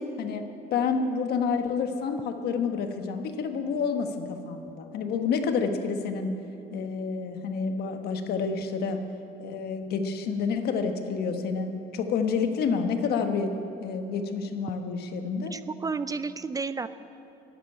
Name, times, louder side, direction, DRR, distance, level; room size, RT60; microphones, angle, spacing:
voice 1, 0.0-9.1 9.4-15.6, left 5 dB, 70° left, 6 dB, 1.3 m, -29 dB
voice 2, 15.5-16.9, right 4 dB, 20° right, 13 dB, 0.4 m, -31 dB
12.5 x 9.1 x 9.7 m, 2.9 s
cardioid pair, 110°, 17 cm